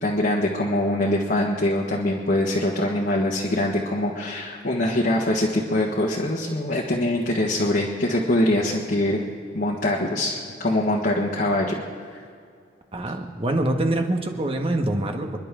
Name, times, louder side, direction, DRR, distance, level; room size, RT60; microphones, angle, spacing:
voice 1, 0.0-9.3 9.5-11.8 12.1-12.2, left 1 dB, 55° left, -3 dB, 1.7 m, -23 dB
voice 2, 12.9-15.4, right 1 dB, 35° right, 4 dB, 1.4 m, -25 dB
29.0 x 11.0 x 3.8 m, 2.2 s
head